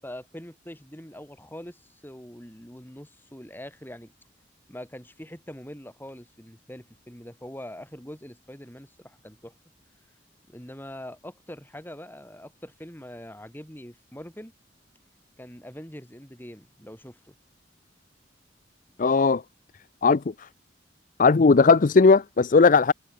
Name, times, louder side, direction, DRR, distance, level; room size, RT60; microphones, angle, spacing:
voice 1, 0.0-4.1 4.7-9.5 10.5-14.5 15.4-17.3, left 1 dB, 10° left, 6.0 m, -43 dB
voice 2, 19.0-19.4 20.0-20.5 21.2-22.9, left 4 dB, 45° left, 0.5 m, -18 dB
head